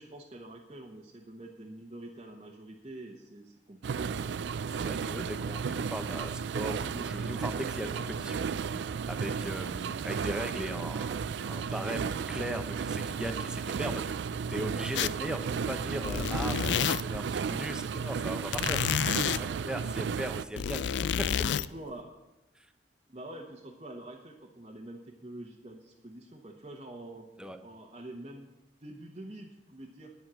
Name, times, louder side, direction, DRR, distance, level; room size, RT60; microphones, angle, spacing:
voice 1, 0.0-4.3 19.3-19.7 21.4-22.0 23.1-27.3 27.6-28.5 28.8-30.1, right 1 dB, 35° right, -2 dB, 1.1 m, -46 dB
sound 1, 3.8-20.4, right 6 dB, 80° right, 0.4 m, -34 dB
voice 2, 4.7-8.5 9.1-11.1 11.4-14.0 14.5-21.3 22.6-22.7 27.4-27.6, right 1 dB, 5° right, 7 dB, 0.9 m, -38 dB
sound 2, 15.0-15.3 15.7-17.3 18.5-19.4 20.4-21.7, left 8 dB, 85° left, 0.4 m, -29 dB
10.5 x 9.1 x 6.2 m, 0.98 s
head